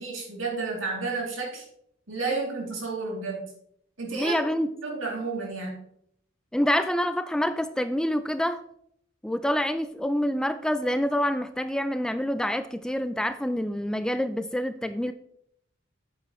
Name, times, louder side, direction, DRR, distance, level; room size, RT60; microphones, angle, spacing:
voice 1, 0.0-1.6 2.1-3.5 4.0-4.3 4.8-5.8, right 4 dB, 75° right, 2.8 m, -31 dB
voice 2, 4.1-4.7 6.5-8.6 9.2-15.1, equal, 5° left, 0.3 m, -27 dB
8.8 x 7.9 x 3.1 m
head